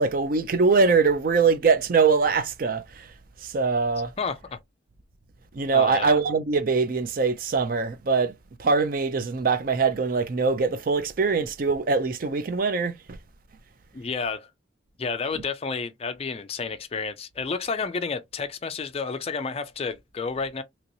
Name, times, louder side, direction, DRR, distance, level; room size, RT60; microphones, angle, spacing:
voice 1, 0.0-3.1 3.4-4.1 5.5-8.3 8.6-13.2, right 4 dB, 45° right, 0.4 m, -23 dB
voice 2, 4.2-4.6 5.7-6.1 13.9-14.5 15.0-20.6, left 4 dB, 30° left, 0.3 m, -30 dB
2.9 x 2.9 x 2.6 m
head